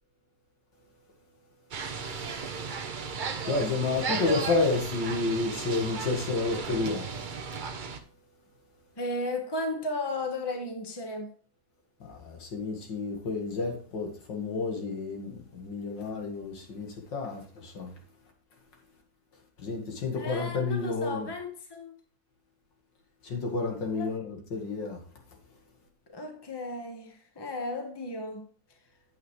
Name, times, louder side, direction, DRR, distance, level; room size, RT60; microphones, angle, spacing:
sound 1, 1.7-8.0, right 5 dB, 55° right, 0.5 m, -35 dB
voice 1, 3.4-7.1 12.0-18.0 19.6-21.3 23.2-25.0, left 3 dB, 75° left, 2.5 m, -30 dB
voice 2, 9.0-11.3 20.1-22.0 23.9-24.2 26.1-28.5, left 2 dB, 15° left, 1.2 m, -35 dB
8.4 x 8.0 x 3.2 m
omnidirectional pair, 2.0 m